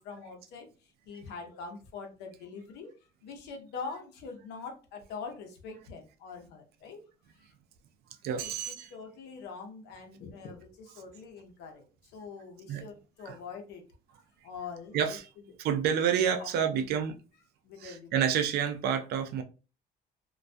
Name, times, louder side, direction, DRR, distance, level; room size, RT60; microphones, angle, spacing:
voice 1, 0.0-2.9 3.2-7.0 8.4-13.8 14.4-15.2 16.4-17.0 17.6-18.2, left 5 dB, 85° left, 0.6 m, -44 dB
voice 2, 8.2-8.9 12.7-12.8 13.3-13.4 14.9-15.3 15.6-17.2 17.8-19.4, right 8 dB, 70° right, 0.4 m, -29 dB
2.2 x 2.2 x 2.5 m
cardioid pair, 110°, 17 cm